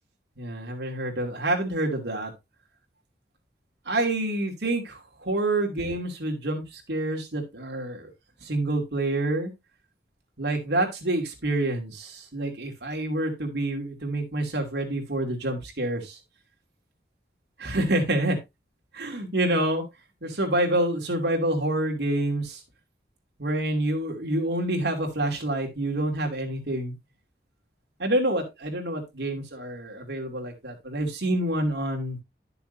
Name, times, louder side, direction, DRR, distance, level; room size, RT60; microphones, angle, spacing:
voice 1, 0.4-2.3 3.9-8.1 8.4-9.5 10.4-16.2 17.6-18.4 18.9-19.8 20.2-22.6 23.4-26.9 28.0-32.2, right 1 dB, 75° right, 2 dB, 2.7 m, -27 dB
11.5 x 6.9 x 2.7 m, 0.22 s
head